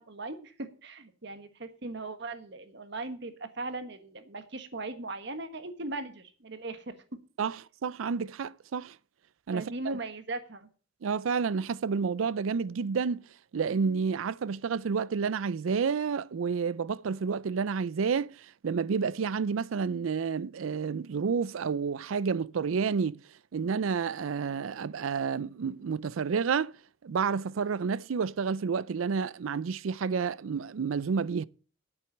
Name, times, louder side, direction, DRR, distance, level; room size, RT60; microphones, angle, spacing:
voice 1, 0.0-7.0 9.5-10.7, right 2 dB, 60° right, 1.4 m, -38 dB
voice 2, 7.4-9.0 9.5-9.7 11.0-13.2 13.5-18.3 18.6-23.2 23.5-26.7 27.0-31.4, right 5 dB, 85° right, 0.4 m, -30 dB
8.9 x 7.8 x 7.1 m
head